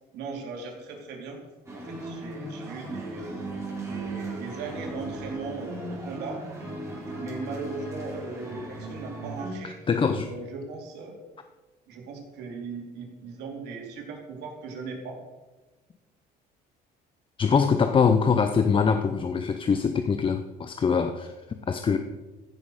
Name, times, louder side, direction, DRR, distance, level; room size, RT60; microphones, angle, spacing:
voice 1, 0.1-1.4 1.7-3.3 3.8-6.4 7.2-9.8 10.2-11.2 11.9-15.2, right 4 dB, 80° right, 0 dB, 3.1 m, -38 dB
sound 1, 1.7-9.5, right 2 dB, 15° right, 3.8 m, -37 dB
voice 2, 9.6-10.3 17.4-22.0, left 6 dB, 30° left, 8 dB, 0.6 m, -23 dB
15.0 x 6.4 x 4.9 m, 1.2 s
cardioid pair, 110°, 17 cm